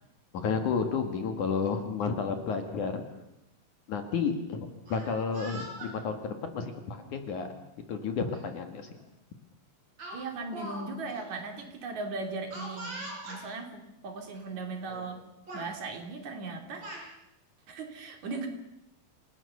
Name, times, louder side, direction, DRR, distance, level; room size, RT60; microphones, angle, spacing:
voice 1, 0.3-3.0 3.9-7.5 7.9-8.9, left 5 dB, 55° left, 6 dB, 3.1 m, -31 dB
Speech, 4.7-5.9 6.9-7.1 8.3-8.4 8.8-9.0 10.0-10.8 11.1-11.2 12.5-13.4 14.3-14.4 14.8-15.2 15.5-15.7 16.5-17.1, right 1 dB, 30° right, 6.0 m, -42 dB
voice 2, 10.1-15.2 15.5-16.9 17.7-18.5, right 3 dB, 50° right, 4 dB, 3.9 m, -38 dB
28.0 x 18.5 x 6.9 m, 0.86 s
omnidirectional pair, 4.4 m